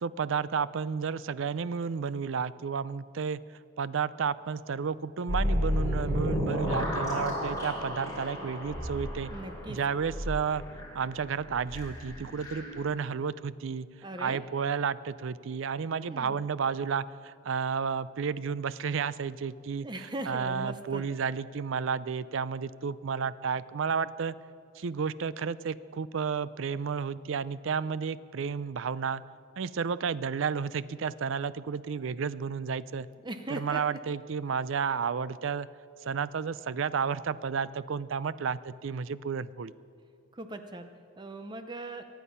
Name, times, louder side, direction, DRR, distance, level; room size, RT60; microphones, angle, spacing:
voice 1, 0.0-3.4 3.8-9.3 9.7-10.6 10.9-13.9 14.2-24.4 24.8-29.2 29.6-33.1 33.5-35.7 36.0-39.7, right 6 dB, 65° right, 17 dB, 0.4 m, -32 dB
sound 1, 5.3-12.8, equal, 15° left, 3.1 m, -32 dB
voice 2, 9.3-9.8 14.0-14.4 15.9-16.4 19.8-21.0 33.2-33.8 40.3-40.9 41.2-42.0, right 1 dB, 20° right, 7 dB, 0.6 m, -39 dB
23.5 x 9.3 x 5.6 m, 2.3 s
head